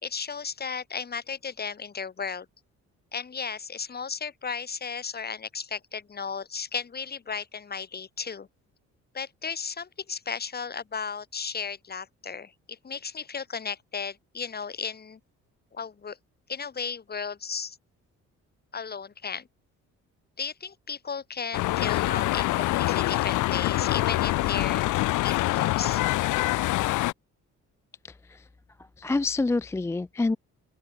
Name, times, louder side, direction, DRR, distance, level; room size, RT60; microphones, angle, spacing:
voice 1, 0.0-2.5 3.1-8.5 9.1-15.2 15.7-16.2 16.5-17.8 18.7-19.5 20.4-26.0, left 6 dB, 30° left, 1.4 m, -35 dB
sound 1, 21.5-27.1, left 18 dB, 80° left, 0.5 m, -25 dB
voice 2, 28.0-28.4 29.0-30.4, left 3 dB, 10° left, 0.3 m, -27 dB
open air
cardioid pair, 90°, 30 cm